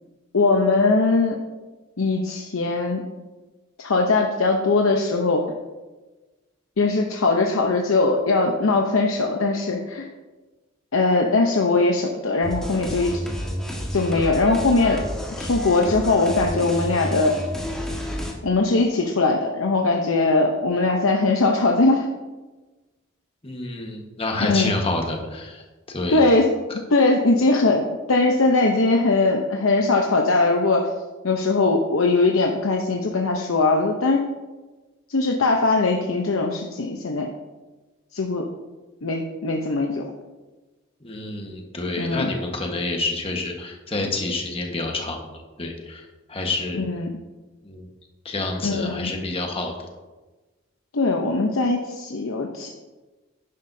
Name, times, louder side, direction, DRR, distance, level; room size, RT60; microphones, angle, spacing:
voice 1, 0.3-1.4 2.0-3.0 3.8-5.4 6.8-10.1 10.9-13.1 13.9-15.0 15.4-17.3 18.4-22.1 24.4-24.7 26.1-26.5 26.9-30.9 31.2-34.2 35.1-37.3 38.1-38.5 39.0-40.0 42.0-42.3 46.7-47.1 48.6-49.1 50.9-52.7, left 3 dB, 85° left, 1 dB, 0.8 m, -20 dB
sound 1, 12.4-18.3, equal, 5° left, 1.6 m, -30 dB
voice 2, 23.4-26.2 41.0-45.2 45.6-46.8 47.6-47.9 48.2-49.7, left 2 dB, 30° left, 2 dB, 1.4 m, -28 dB
11.0 x 10.5 x 2.7 m, 1.2 s
head